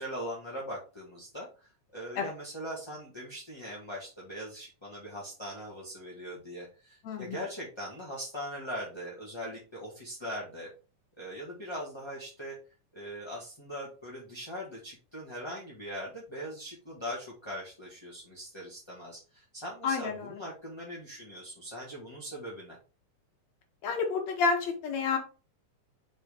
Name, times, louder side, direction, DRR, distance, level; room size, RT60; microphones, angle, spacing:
voice 1, 0.0-10.7 11.2-12.6 12.9-22.8, equal, 10° left, -5 dB, 1.3 m, -41 dB
voice 2, 7.0-7.4 19.8-20.4 23.8-25.2, left 5 dB, 65° left, 3 dB, 2.3 m, -29 dB
6.2 x 4.5 x 3.6 m, 0.33 s
omnidirectional pair, 3.5 m